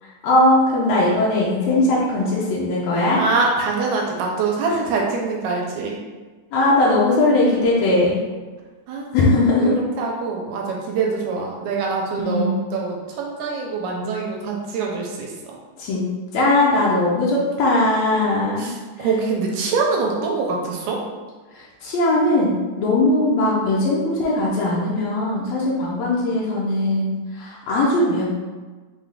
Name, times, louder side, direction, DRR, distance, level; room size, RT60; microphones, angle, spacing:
voice 1, 0.0-3.2 6.5-8.2 9.1-9.8 12.2-12.6 15.8-16.0 16.3-18.7 19.0-19.1 21.5-28.2, left 2 dB, 75° left, -6 dB, 1.6 m, -19 dB
voice 2, 3.2-6.0 8.9-15.6 18.6-21.0, right 4 dB, 80° right, -1 dB, 2.0 m, -24 dB
5.4 x 2.4 x 3.6 m, 1.3 s
omnidirectional pair, 3.6 m